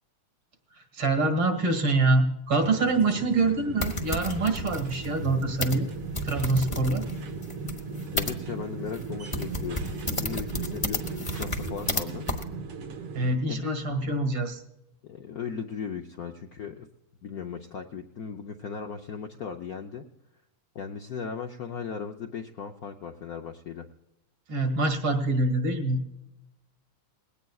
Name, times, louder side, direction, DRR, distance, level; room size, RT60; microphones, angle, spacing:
voice 1, 0.9-5.9 6.2-7.0 13.1-14.6 24.5-26.0, right 2 dB, 70° right, 5 dB, 2.8 m, -25 dB
sound 1, 2.6-13.3, right 4 dB, 90° right, 2.3 m, -37 dB
sound 2, 3.8-8.3 8.9-9.1 9.3-12.0 12.3-12.4, left 2 dB, 30° left, 0.5 m, -32 dB
voice 2, 8.1-12.3 13.5-14.1 15.0-16.9 17.2-20.1 20.7-23.9, left 6 dB, 65° left, 4 dB, 0.9 m, -37 dB
20.0 x 17.5 x 2.4 m, 0.88 s
omnidirectional pair, 2.4 m